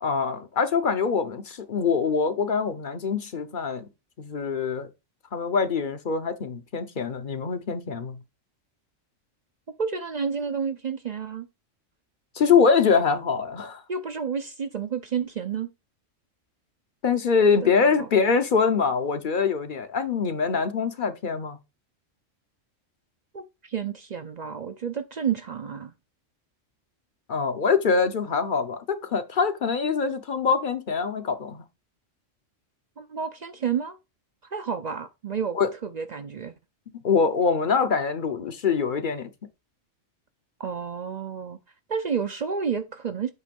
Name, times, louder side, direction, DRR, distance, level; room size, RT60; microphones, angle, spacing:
voice 1, 0.0-3.9 4.2-4.9 5.3-8.2 12.4-13.8 17.0-21.6 27.3-31.6 35.5-35.7 37.0-39.3, left 5 dB, 45° left, 0.8 m, -24 dB
voice 2, 9.8-11.5 13.9-15.7 17.5-18.1 23.3-25.9 33.0-34.0 34.5-36.6 40.6-41.6 41.9-43.3, right 6 dB, 50° right, 0.5 m, -30 dB
8.4 x 3.1 x 5.2 m
omnidirectional pair, 1.3 m